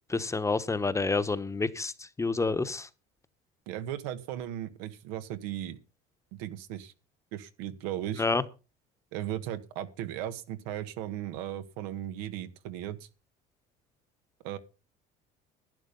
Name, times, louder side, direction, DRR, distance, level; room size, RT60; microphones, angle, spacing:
voice 1, 0.1-2.9 8.2-8.4, left 3 dB, 15° left, 1.0 m, -28 dB
voice 2, 3.7-5.8 6.3-6.9 7.3-8.2 9.1-13.1 14.4-14.6, right 12 dB, 90° right, 1.7 m, -36 dB
11.5 x 10.5 x 5.4 m
supercardioid pair, 110°, 19 cm